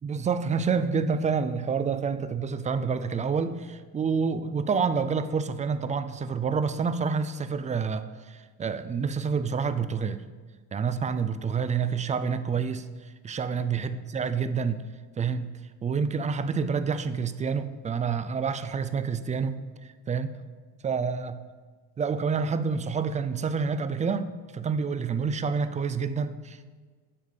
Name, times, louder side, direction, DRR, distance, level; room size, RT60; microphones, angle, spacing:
voice 1, 0.0-10.2 10.7-12.9 13.2-14.8 15.2-15.5 15.8-19.6 20.1-20.4 20.8-21.4 22.0-26.6, right 5 dB, 20° right, 11 dB, 0.3 m, -28 dB
9.5 x 3.6 x 6.6 m, 1.4 s
supercardioid pair, 95°, 40 cm